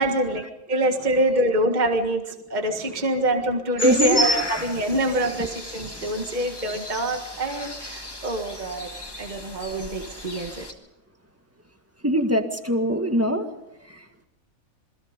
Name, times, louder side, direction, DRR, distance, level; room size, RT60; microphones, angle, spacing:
voice 1, 0.0-8.9 9.2-10.7, right 1 dB, 30° right, 4 dB, 1.8 m, -25 dB
sound 1, 3.8-10.7, left 1 dB, 15° left, 2.1 m, -32 dB
voice 2, 3.8-4.2 6.0-6.1 12.0-13.5 13.9-14.0, equal, 10° right, 6 dB, 1.7 m, -23 dB
27.5 x 21.0 x 5.2 m, 0.88 s
omnidirectional pair, 1.5 m